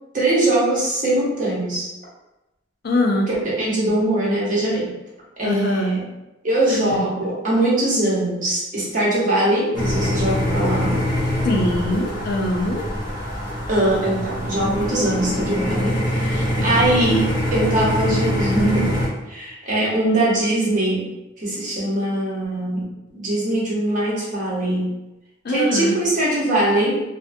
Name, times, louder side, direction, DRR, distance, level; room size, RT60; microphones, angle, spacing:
voice 1, 0.1-1.9 3.3-4.9 5.4-6.1 6.4-11.0 13.7-19.0 19.3-22.8 23.1-24.9 25.5-27.0, right 1 dB, 40° right, -5 dB, 0.8 m, -21 dB
voice 2, 2.8-3.3 5.4-5.9 6.9-7.0 11.4-12.8 16.6-16.8 25.4-26.0, left 1 dB, 55° left, 2 dB, 0.4 m, -22 dB
sound 1, 9.7-19.1, left 1 dB, 25° left, 0.7 m, -24 dB
2.6 x 2.4 x 2.5 m, 0.96 s
head